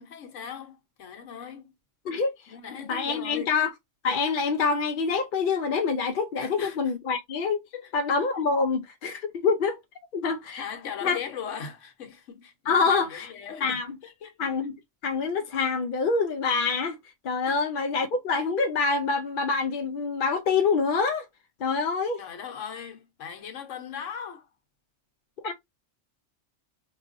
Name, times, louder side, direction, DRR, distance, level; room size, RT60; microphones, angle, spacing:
voice 1, 0.0-1.7 2.5-3.5 6.4-6.9 7.7-7.9 10.6-14.3 17.4-17.9 22.2-24.5, left 7 dB, 85° left, 1.2 m, -39 dB
voice 2, 2.1-3.7 4.0-7.6 7.9-9.8 10.1-10.6 11.0-11.2 12.7-13.3 13.6-13.9 14.4-14.7 15.0-17.0 17.2-21.3 21.6-22.2 25.4-25.5, left 4 dB, 60° left, 0.6 m, -26 dB
4.8 x 2.3 x 2.5 m
omnidirectional pair, 1.3 m